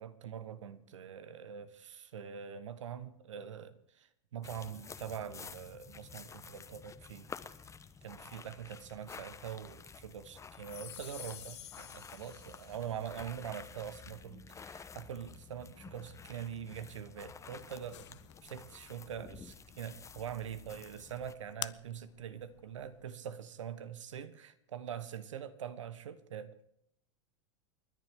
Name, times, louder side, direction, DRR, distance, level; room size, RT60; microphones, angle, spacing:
voice 1, 0.0-7.3 8.0-26.5, right 8 dB, 80° right, 13 dB, 1.2 m, -44 dB
sound 1, 4.4-21.3, left 5 dB, 20° left, 1.0 m, -51 dB
sound 2, 10.5-13.0, left 12 dB, 45° left, 2.7 m, -50 dB
sound 3, 17.9-23.2, left 15 dB, 70° left, 0.5 m, -50 dB
29.5 x 11.0 x 3.7 m, 0.76 s
hypercardioid pair, 90°, 16 cm